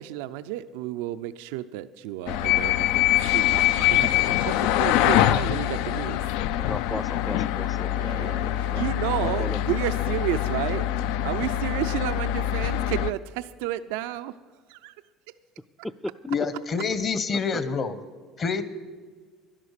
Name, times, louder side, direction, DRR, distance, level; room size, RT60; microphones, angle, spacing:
voice 1, 0.0-3.0 3.3-6.2 7.9-10.9 11.2-14.3, right 14 dB, 90° right, 11 dB, 0.4 m, -31 dB
sound 1, 2.3-13.1, left 13 dB, 80° left, 0.4 m, -24 dB
voice 2, 5.1-5.4 6.6-8.8 9.2-9.6 15.8-16.1 17.3-17.6, left 1 dB, 5° left, 17 dB, 0.3 m, -35 dB
voice 3, 16.3-17.9 18.4-18.6, left 5 dB, 35° left, 12 dB, 1.0 m, -27 dB
11.5 x 11.0 x 6.6 m, 1.5 s
cardioid pair, 130°, 0 cm